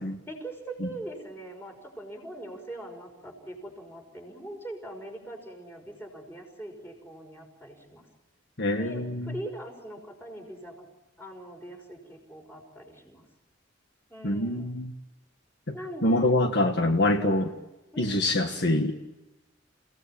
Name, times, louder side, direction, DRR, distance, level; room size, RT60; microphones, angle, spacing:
voice 1, 0.3-8.1 8.8-10.9 11.2-13.3 14.1-14.7 15.7-16.3 17.9-18.3, right 1 dB, 10° left, 3 dB, 5.7 m, -42 dB
voice 2, 8.6-9.3 14.2-14.9 15.7-15.8 16.0-17.5 18.0-18.9, left 1 dB, 60° left, 4 dB, 1.7 m, -25 dB
30.0 x 18.0 x 9.1 m, 1.0 s
head